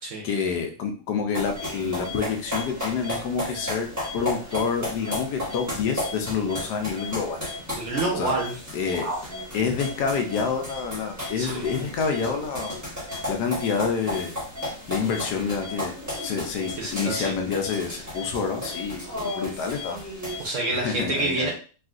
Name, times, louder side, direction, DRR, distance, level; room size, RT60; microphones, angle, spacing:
voice 1, 0.2-7.4 8.2-8.4 8.7-9.1 9.5-12.8 13.3-14.4 14.9-20.0 20.7-21.5, left 6 dB, 75° left, 3 dB, 1.2 m, -28 dB
sound 1, 1.3-20.5, left 1 dB, 15° right, 0.8 m, -34 dB
voice 2, 7.7-8.5 9.0-9.2 11.4-11.7 16.8-17.3 18.2-18.3 20.4-21.5, right 2 dB, 60° right, -1 dB, 0.9 m, -28 dB
3.7 x 2.4 x 2.4 m, 0.38 s
omnidirectional pair, 1.8 m